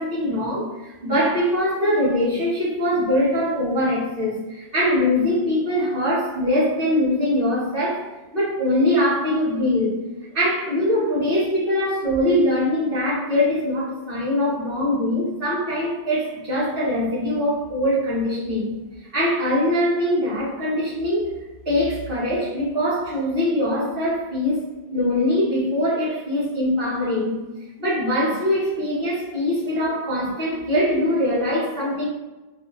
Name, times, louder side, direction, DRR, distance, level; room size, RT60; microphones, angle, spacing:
voice 1, 0.0-8.1 8.3-10.0 10.3-21.4 21.6-24.6 24.9-27.4 27.8-32.1, left 1 dB, 55° right, -8 dB, 1.5 m, -22 dB
3.1 x 2.7 x 3.1 m, 1.1 s
omnidirectional pair, 1.1 m